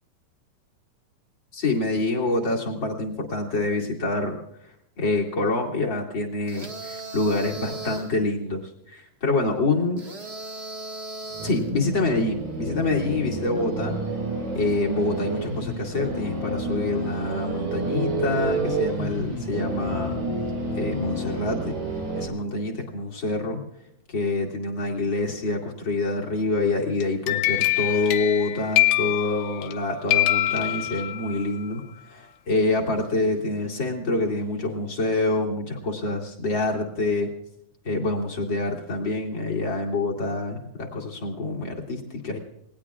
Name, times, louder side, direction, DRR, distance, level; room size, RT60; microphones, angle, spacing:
voice 1, 1.5-4.4 5.0-10.0 11.4-14.0 14.5-20.2 20.7-21.7 22.2-23.6 24.1-37.3 37.8-42.4, left 2 dB, 35° left, -1 dB, 2.7 m, -26 dB
sound 1, 6.5-8.2 10.0-11.7, right 2 dB, 35° right, 1.0 m, -37 dB
sound 2, 11.3-22.3, right 2 dB, 75° right, 6.3 m, -29 dB
sound 3, 27.0-29.8 30.1-31.4, left 17 dB, 85° left, 2.5 m, -24 dB
27.5 x 20.0 x 2.4 m, 0.78 s
omnidirectional pair, 4.1 m